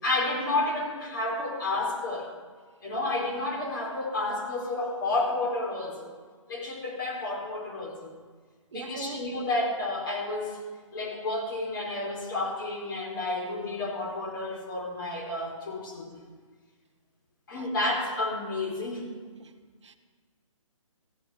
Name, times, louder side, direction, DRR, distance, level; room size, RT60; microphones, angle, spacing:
voice 1, 0.0-2.3 2.8-6.1 6.5-8.1 8.7-10.6 10.9-16.2 17.5-19.1, left 2 dB, 40° left, -1 dB, 4.1 m, -31 dB
voice 2, 8.7-9.2 17.5-17.7 19.4-19.5 19.8-20.0, right 6 dB, 60° right, 9 dB, 1.1 m, -41 dB
15.0 x 9.3 x 7.9 m, 1.5 s
hypercardioid pair, 165°, 17 cm